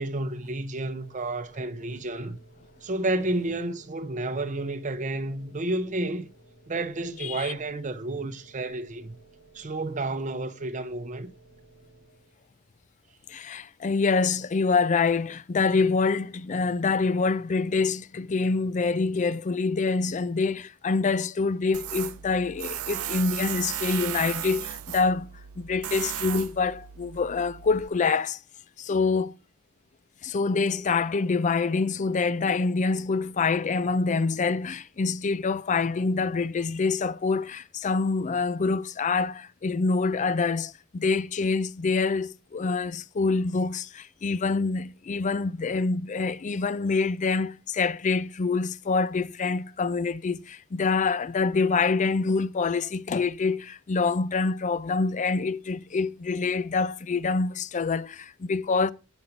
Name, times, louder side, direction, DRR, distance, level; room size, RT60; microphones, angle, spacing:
voice 1, 0.0-2.4 2.8-6.3 6.7-9.1 9.5-11.3, right 2 dB, 35° right, 0.7 m, -31 dB
sound 1, 0.8-12.5, right 2 dB, 70° left, 5.3 m, -56 dB
voice 2, 7.2-7.5 13.3-25.3 25.6-28.4 28.8-29.3 30.2-58.9, left 4 dB, 35° left, 0.4 m, -26 dB
Tools, 21.7-27.9, right 12 dB, 70° right, 0.5 m, -35 dB
7.9 x 5.6 x 5.8 m
head